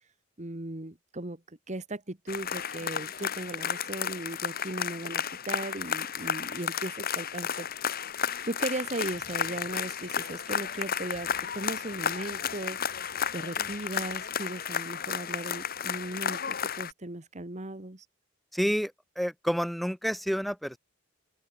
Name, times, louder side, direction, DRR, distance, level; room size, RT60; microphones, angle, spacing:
voice 1, 0.4-8.1 8.5-13.0 13.3-18.1, right 2 dB, 35° right, 1.9 m, -37 dB
sound 1, 2.3-16.9, left 8 dB, 50° left, 1.7 m, -33 dB
voice 2, 18.5-20.8, equal, ahead, 2.8 m, -29 dB
open air
head